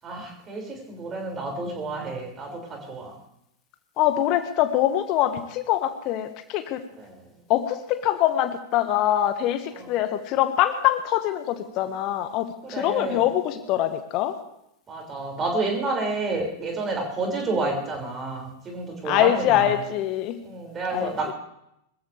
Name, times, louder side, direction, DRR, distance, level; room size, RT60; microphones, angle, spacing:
voice 1, 0.0-3.1 7.0-7.2 9.8-9.9 12.6-13.2 14.9-19.7 20.4-21.3, right 3 dB, 25° right, 0 dB, 6.3 m, -30 dB
voice 2, 4.0-6.8 7.5-14.4 19.0-20.4 20.9-21.3, left 12 dB, 40° left, 9 dB, 1.6 m, -24 dB
24.5 x 14.5 x 3.5 m, 0.78 s
figure-of-eight pair, 90°, 0 cm